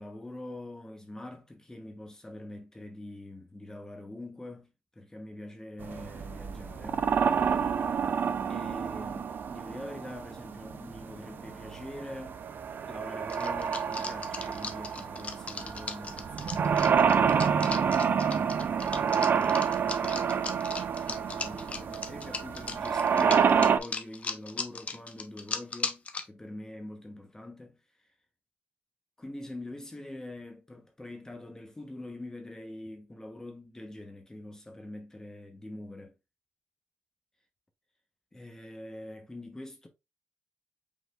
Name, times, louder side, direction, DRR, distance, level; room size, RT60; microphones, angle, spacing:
voice 1, 0.0-7.1 8.5-12.4 12.9-18.7 19.0-20.4 21.0-28.1 29.2-36.1 38.3-39.9, left 1 dB, 15° left, 1.0 m, -44 dB
sound 1, 5.8-23.8, right 7 dB, 60° right, 0.5 m, -28 dB
sound 2, 13.3-26.2, left 4 dB, 35° left, 0.7 m, -37 dB
5.2 x 3.9 x 2.4 m
cardioid pair, 110°, 4 cm